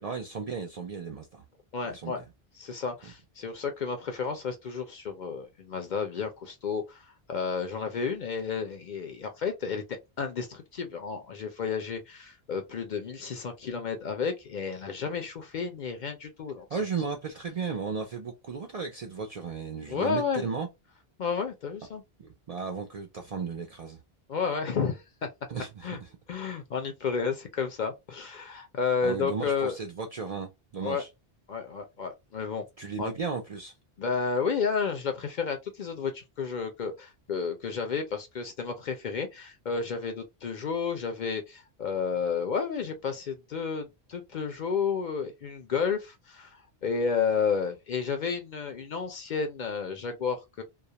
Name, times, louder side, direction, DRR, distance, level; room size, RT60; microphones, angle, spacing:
voice 1, 0.0-1.4 1.9-2.2 3.0-3.1 16.7-20.7 22.2-24.0 25.5-26.1 29.0-31.1 32.8-33.7, right 5 dB, 55° right, 0.4 m, -35 dB
voice 2, 1.7-2.2 2.6-9.8 10.2-16.7 19.9-20.4 21.2-22.0 24.3-25.3 25.8-26.0 26.3-29.8 30.8-31.0 31.5-32.6 33.0-33.1 34.0-50.6, left 5 dB, 55° left, 0.6 m, -31 dB
2.3 x 2.0 x 2.7 m
omnidirectional pair, 1.0 m